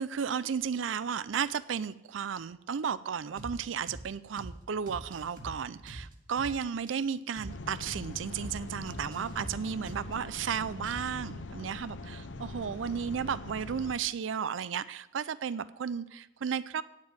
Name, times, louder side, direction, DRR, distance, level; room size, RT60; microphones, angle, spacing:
voice 1, 0.0-16.8, right 7 dB, 80° right, 16 dB, 0.4 m, -34 dB
sound 1, 3.4-3.6 3.9-4.1 4.4-4.6 4.9-6.6 6.9-7.0 7.4-7.6 7.9-8.1 8.4-8.6 8.9-10.4 10.9-11.3, right 1 dB, 45° right, 1.9 m, -44 dB
sound 2, 7.5-13.9, left 2 dB, 70° left, 0.7 m, -43 dB
9.4 x 7.4 x 9.0 m, 0.94 s
head